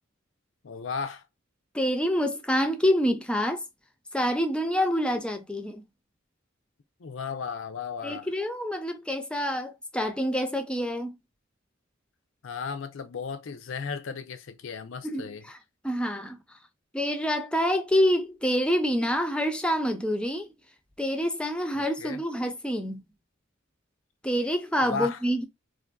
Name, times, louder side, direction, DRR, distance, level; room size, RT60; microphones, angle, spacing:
voice 1, 0.6-1.2 7.0-8.3 12.4-15.5 21.7-22.2 24.8-25.2, left 5 dB, 70° left, 0.5 m, -35 dB
voice 2, 1.7-3.6 4.1-5.8 8.0-11.2 15.0-15.6 15.8-16.4 16.9-20.5 21.0-23.0 24.2-25.4, equal, 5° left, 0.5 m, -27 dB
3.4 x 2.5 x 2.2 m
head